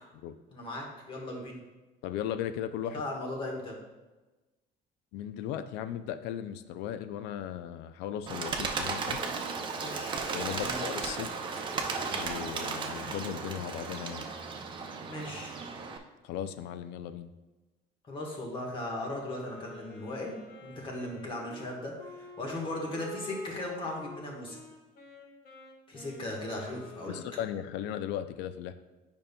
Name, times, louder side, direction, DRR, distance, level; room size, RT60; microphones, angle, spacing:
voice 1, 0.5-1.6 2.9-3.8 9.7-10.2 10.5-10.8 15.1-15.6 18.1-20.3 20.6-24.6 25.9-27.2, left 1 dB, 30° left, 0 dB, 1.3 m, -37 dB
voice 2, 2.0-3.0 5.1-9.2 10.3-11.3 12.1-14.3 16.2-17.3 27.1-28.7, left 10 dB, 75° left, 11 dB, 0.4 m, -37 dB
Bird, 8.3-16.0, right 4 dB, 25° right, 0.5 m, -35 dB
Wind instrument woodwind instrument, 19.3-27.8, left 3 dB, 50° left, 1.5 m, -48 dB
8.9 x 5.3 x 2.2 m, 1.1 s
cardioid pair, 150°, 18 cm